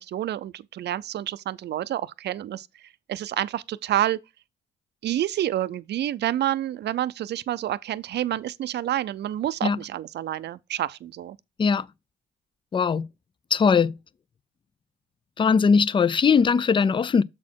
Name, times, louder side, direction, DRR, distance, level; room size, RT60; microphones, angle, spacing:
voice 1, 0.0-2.7 3.1-4.2 5.0-11.4, right 12 dB, 60° right, 0.5 m, -28 dB
voice 2, 12.7-13.1 13.5-14.0 15.4-17.2, left 5 dB, 25° left, 0.4 m, -20 dB
7.3 x 4.2 x 4.5 m
cardioid pair, 90°, 20 cm